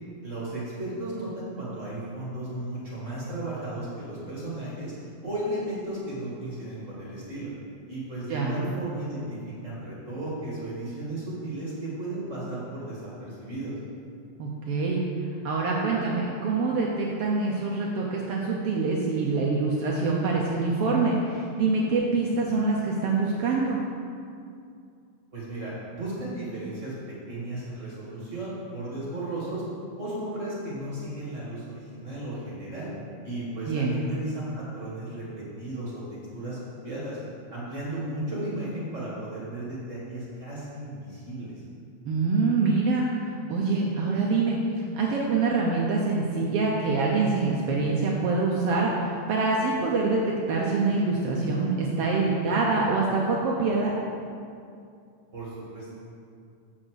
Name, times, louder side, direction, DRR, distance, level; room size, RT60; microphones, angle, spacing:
voice 1, 0.2-4.9 5.2-7.5 7.9-13.7 25.3-26.9 27.3-29.6 30.0-32.9 33.2-36.6 36.8-37.2 37.5-41.5 55.3-55.9, right 1 dB, 30° right, -7 dB, 1.6 m, -35 dB
voice 2, 14.4-15.1 15.4-23.8 33.7-34.0 42.0-43.2 43.5-44.6 44.9-53.9, right 3 dB, 80° right, -2 dB, 1.3 m, -25 dB
7.7 x 5.7 x 6.3 m, 2.4 s
omnidirectional pair, 3.6 m